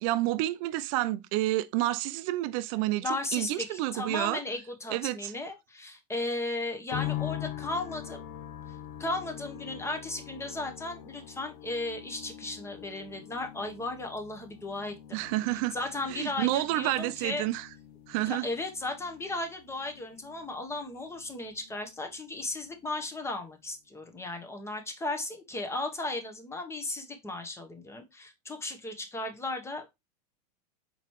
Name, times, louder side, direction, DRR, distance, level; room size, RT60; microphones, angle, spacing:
voice 1, 0.0-4.4 4.9-5.3 15.1-15.8 16.1-17.7 18.1-18.5, right 16 dB, 55° right, 0.5 m, -29 dB
voice 2, 3.0-8.2 9.0-15.2 15.7-17.5 18.2-29.9, left 2 dB, 15° left, 0.9 m, -35 dB
sound 1, 6.9-22.2 22.4-23.3, left 12 dB, 60° left, 0.6 m, -43 dB
4.3 x 4.0 x 3.0 m
hypercardioid pair, 110°, 21 cm